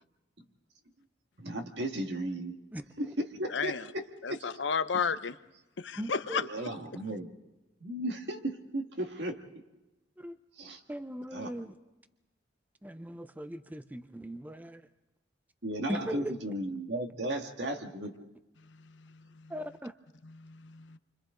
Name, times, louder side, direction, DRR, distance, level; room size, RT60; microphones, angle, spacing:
voice 1, 1.4-2.6 3.0-4.4 6.4-7.3 7.8-9.4 10.6-10.8 11.3-11.5 15.6-18.1, right 1 dB, 65° right, 4 dB, 1.9 m, -35 dB
voice 2, 3.5-3.8 4.2-5.4 5.8-6.4 19.4-19.5 20.4-21.0, left 5 dB, 75° left, 12 dB, 0.7 m, -32 dB
voice 3, 6.0-6.4 10.2-10.4 10.9-11.7 12.8-14.8 15.9-16.3 19.5-19.9, equal, 10° right, 10 dB, 0.6 m, -39 dB
30.0 x 25.0 x 3.8 m, 1.0 s
head